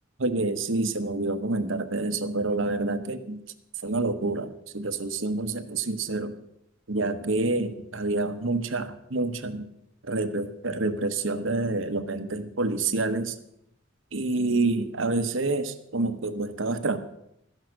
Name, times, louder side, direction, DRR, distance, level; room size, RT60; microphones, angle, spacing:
voice 1, 0.2-3.4 3.8-6.4 6.9-9.7 10.0-13.3 14.1-17.0, right 2 dB, 70° right, 10 dB, 1.1 m, -28 dB
14.0 x 10.5 x 6.4 m, 0.78 s
head